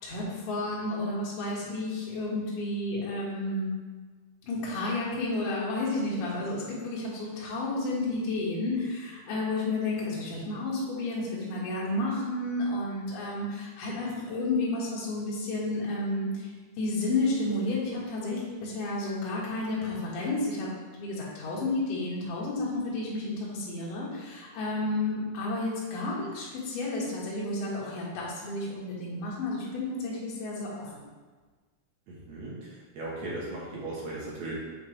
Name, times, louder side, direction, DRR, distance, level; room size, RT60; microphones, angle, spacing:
voice 1, 0.0-3.7 4.4-31.0, left 2 dB, 60° left, -5 dB, 2.8 m, -31 dB
voice 2, 32.1-34.5, right 2 dB, 65° right, -6 dB, 1.9 m, -37 dB
7.4 x 5.8 x 3.2 m, 1.4 s
omnidirectional pair, 5.0 m